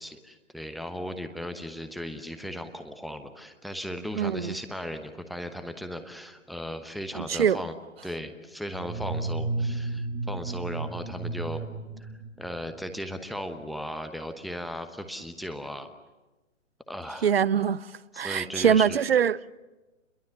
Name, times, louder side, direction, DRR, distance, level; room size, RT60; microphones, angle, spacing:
voice 1, 0.0-7.7 8.0-11.6 12.0-12.1 12.4-15.9 16.9-17.3 18.1-19.0, equal, ahead, 1.0 m, -37 dB
voice 2, 4.1-4.5 7.1-7.6 17.2-17.9 18.2-19.6, right 8 dB, 50° right, 0.8 m, -23 dB
sound 1, 8.7-12.8, right 3 dB, 20° right, 1.4 m, -33 dB
30.0 x 22.5 x 7.1 m
figure-of-eight pair, 125°, 38 cm